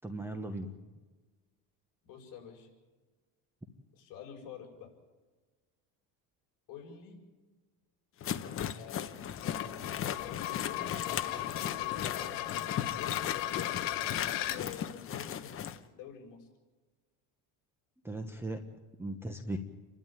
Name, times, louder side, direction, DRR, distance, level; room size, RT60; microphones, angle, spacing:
voice 1, 0.0-0.7 18.0-18.6 19.0-19.6, right 2 dB, 5° right, 5 dB, 1.1 m, -37 dB
voice 2, 2.0-2.7 3.9-4.9 6.7-7.2 8.7-9.3 10.7-13.8 14.5-15.6 15.9-16.5, left 8 dB, 55° left, 0 dB, 7.4 m, -48 dB
sound 1, 8.2-15.8, left 9 dB, 35° left, 1.0 m, -37 dB
sound 2, 9.3-14.6, left 14 dB, 90° left, 2.1 m, -36 dB
29.5 x 12.5 x 9.1 m, 1.3 s
cardioid pair, 165°, 40 cm